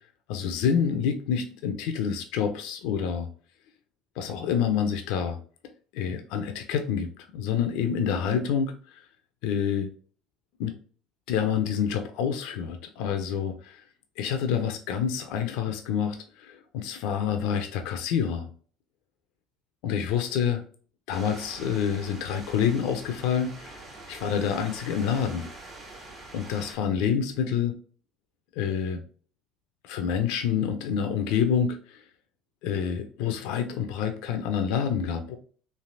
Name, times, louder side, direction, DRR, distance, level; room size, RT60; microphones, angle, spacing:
voice 1, 0.3-3.3 4.2-5.4 5.9-9.0 9.4-9.9 10.6-10.7 11.3-13.8 14.2-18.5 19.8-20.6 21.1-23.8 24.1-25.5 26.3-27.7 28.6-29.0 29.8-32.0 32.6-35.4, left 7 dB, 70° left, 6 dB, 0.4 m, -27 dB
sound 1, 21.1-26.7, right 2 dB, 50° right, 1.3 m, -44 dB
3.3 x 2.5 x 2.5 m, 0.43 s
hypercardioid pair, 70°, 0 cm